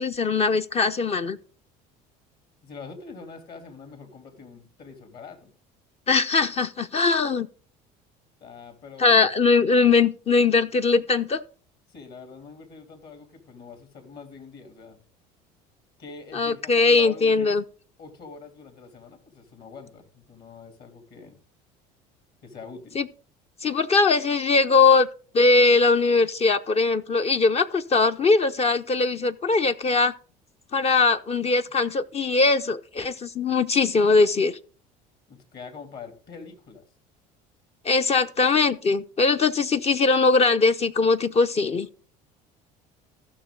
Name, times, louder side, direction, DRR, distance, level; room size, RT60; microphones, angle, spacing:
voice 1, 0.0-1.4 6.1-7.5 9.0-11.4 16.3-17.6 23.0-23.1 23.6-25.1 25.3-30.1 30.7-34.6 37.8-41.9, left 4 dB, 30° left, 0.6 m, -21 dB
voice 2, 2.6-5.5 6.9-7.1 8.4-9.3 11.9-15.0 16.0-17.5 18.0-21.4 22.4-23.0 35.3-36.8, left 5 dB, 55° left, 3.0 m, -44 dB
15.0 x 6.2 x 3.8 m
hypercardioid pair, 80°, 20 cm